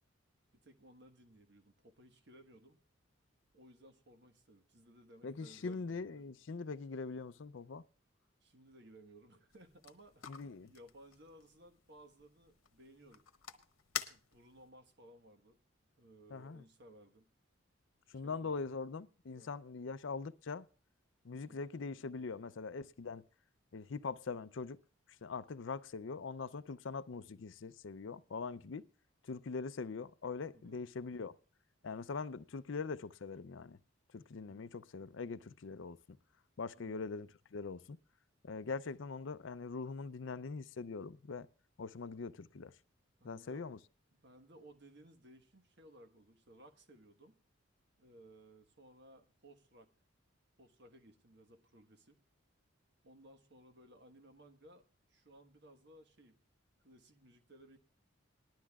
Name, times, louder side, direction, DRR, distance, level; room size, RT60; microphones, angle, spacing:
voice 1, 0.5-2.8 3.5-6.1 8.4-13.2 14.1-15.6 16.0-17.3 18.1-18.7 19.3-19.5 21.4-21.7 30.5-30.8 34.5-34.7 36.8-37.0 43.2-43.7 44.1-47.4 48.0-49.9 50.6-52.2 53.0-56.4 56.8-57.8, right 1 dB, 55° right, 1.3 m, -60 dB
voice 2, 5.2-7.8 10.3-10.7 16.3-16.6 18.1-20.7 21.2-23.2 23.7-24.8 25.2-28.8 29.2-31.3 31.8-33.8 34.1-36.0 36.6-38.0 38.4-41.5 41.8-42.7 43.2-43.8, left 4 dB, 65° left, 0.5 m, -42 dB
sound 1, 9.5-14.7, left 10 dB, 85° left, 1.1 m, -48 dB
20.0 x 12.0 x 2.4 m
head